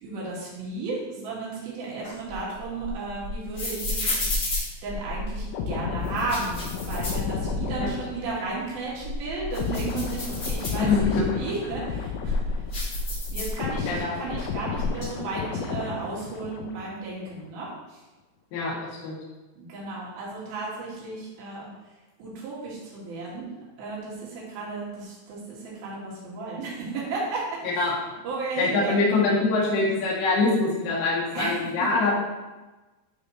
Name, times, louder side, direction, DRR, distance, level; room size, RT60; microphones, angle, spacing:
voice 1, 0.0-4.1 4.8-12.4 13.3-18.0 19.5-21.7 22.2-23.5 23.8-27.9 28.2-29.3 31.3-32.1, right 3 dB, 55° right, -5 dB, 3.4 m, -34 dB
sound 1, 2.0-5.5 6.0-7.9 8.2-8.3 8.8-11.2 11.8-14.0 14.2-15.0, left 2 dB, 30° left, 2.5 m, -31 dB
sound 2, 5.5-13.0 13.3-17.0 17.3-17.5, left 6 dB, 85° left, 2.5 m, -33 dB
voice 2, 10.8-11.4 13.9-14.1 18.5-18.8 19.0-19.2 27.8-27.9 28.6-32.2, left 3 dB, 60° left, -6 dB, 3.6 m, -24 dB
12.5 x 4.8 x 3.1 m, 1.1 s
omnidirectional pair, 5.7 m